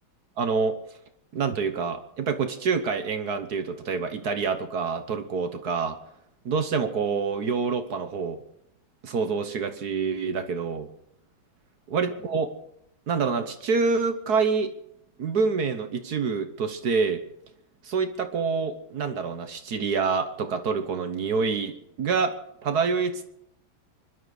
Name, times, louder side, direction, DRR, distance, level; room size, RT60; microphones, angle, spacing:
voice 1, 0.4-0.8 1.3-6.0 6.4-8.4 9.0-10.9 11.9-12.5 13.1-14.7 15.2-17.2 17.8-22.3 22.6-23.2, right 5 dB, 55° right, 9 dB, 1.4 m, -26 dB
25.0 x 11.5 x 4.9 m, 0.77 s
omnidirectional pair, 2.3 m